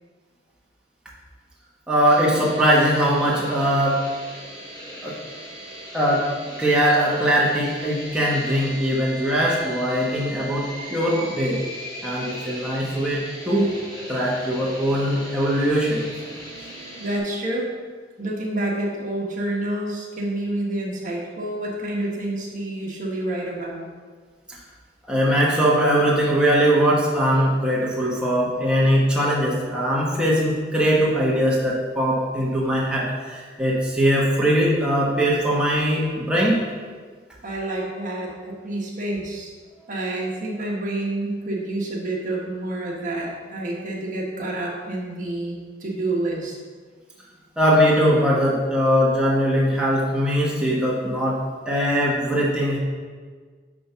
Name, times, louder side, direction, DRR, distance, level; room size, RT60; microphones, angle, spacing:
voice 1, 1.9-4.0 5.0-5.2 5.9-6.3 6.6-11.6 12.0-13.7 14.1-16.1 25.1-36.6 47.6-51.4 51.7-52.8, equal, 5° right, -6 dB, 1.2 m, -21 dB
sound 1, 2.0-17.2, equal, 20° left, 2.1 m, -38 dB
voice 2, 17.0-17.7 18.2-23.8 37.4-39.5 39.9-46.5, right 1 dB, 45° right, -3 dB, 1.4 m, -28 dB
9.9 x 3.6 x 5.6 m, 1.5 s
head